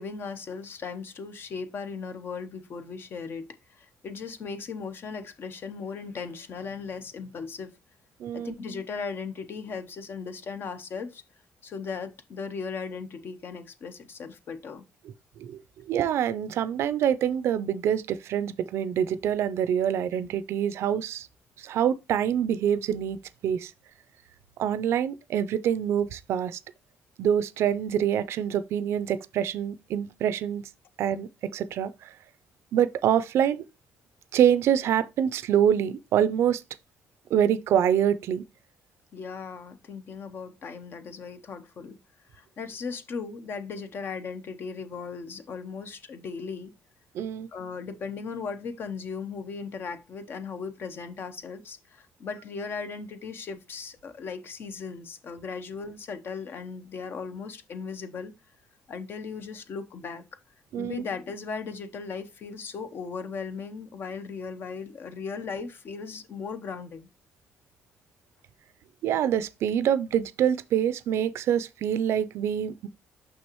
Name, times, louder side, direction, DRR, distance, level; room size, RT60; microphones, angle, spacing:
voice 1, 0.0-7.8 8.3-11.2 11.6-14.8 39.1-42.0 42.3-46.7 47.5-58.3 58.9-60.2 60.8-67.1, left 5 dB, 55° left, 0.9 m, -37 dB
voice 2, 8.2-8.5 15.4-15.6 15.9-21.3 21.6-23.7 24.6-26.6 27.2-30.6 31.0-32.1 32.7-33.6 34.3-36.6 37.3-38.4 47.1-47.5 60.7-61.0 69.0-72.9, right 9 dB, 70° right, 0.5 m, -25 dB
6.2 x 5.9 x 3.0 m
cardioid pair, 105°, 5 cm